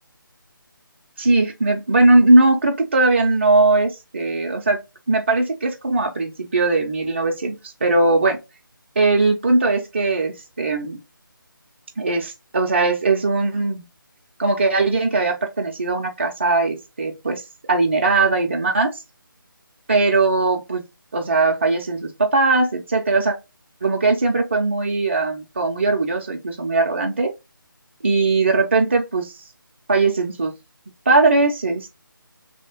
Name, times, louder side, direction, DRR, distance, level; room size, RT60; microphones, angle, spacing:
voice 1, 1.2-4.8 5.1-8.4 9.0-11.0 12.0-13.8 14.4-17.4 17.7-19.0 19.9-20.8 21.1-23.4 23.8-27.3 28.0-29.3 29.9-30.5 31.1-31.9, right 3 dB, 35° right, 0.3 m, -19 dB
2.8 x 2.7 x 2.8 m
figure-of-eight pair, 155°, 12 cm